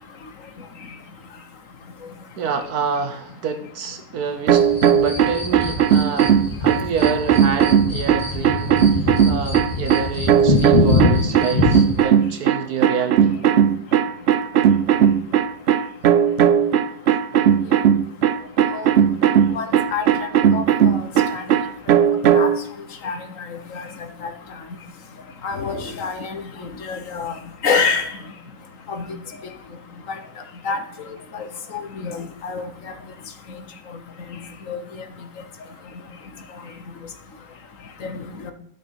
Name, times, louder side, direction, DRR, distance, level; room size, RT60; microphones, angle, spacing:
voice 1, 2.3-13.4, right 5 dB, 65° right, 8 dB, 1.4 m, -28 dB
sound 1, 4.5-12.0, left 2 dB, 20° left, 2.1 m, -23 dB
sound 2, 4.5-22.6, right 9 dB, 85° right, 0.5 m, -17 dB
voice 2, 23.5-23.8 24.2-24.3 25.4-26.4 26.8-27.3 27.6-28.1 28.9-29.0 30.6-30.8 32.0-32.7 34.7-34.8 38.0-38.2, left 5 dB, 55° left, 8 dB, 1.4 m, -25 dB
12.0 x 6.6 x 4.8 m, 0.76 s
omnidirectional pair, 1.8 m